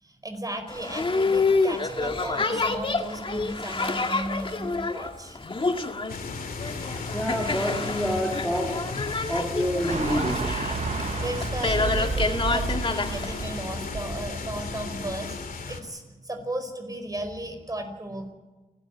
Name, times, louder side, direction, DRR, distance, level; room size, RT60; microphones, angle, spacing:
voice 1, 0.0-5.4 10.9-18.3, right 1 dB, 25° right, 5.2 m, -35 dB
Boat Water vehicle, 0.7-13.8, left 3 dB, 35° left, 2.0 m, -28 dB
sound 1, 6.1-15.8, left 4 dB, 70° left, 2.8 m, -35 dB
voice 2, 7.1-10.7, equal, ahead, 2.9 m, -28 dB
sound 2, 9.9-15.2, right 5 dB, 50° right, 1.0 m, -32 dB
29.5 x 13.0 x 8.9 m
cardioid pair, 80°, 15 cm